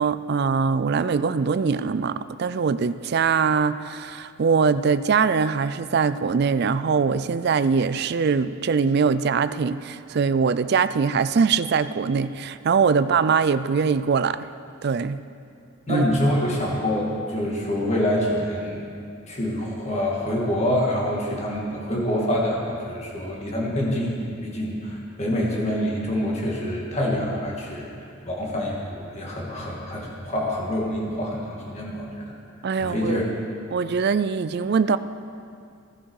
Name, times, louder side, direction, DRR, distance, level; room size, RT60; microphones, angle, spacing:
voice 1, 0.0-14.4 14.8-15.2 15.9-16.0 32.6-33.2 33.7-35.0, right 5 dB, 50° right, 13 dB, 0.4 m, -22 dB
voice 2, 15.9-18.8 19.3-27.9 28.3-32.3 32.8-33.2, left 1 dB, 30° left, -3 dB, 2.2 m, -26 dB
15.5 x 11.0 x 4.8 m, 2.4 s
head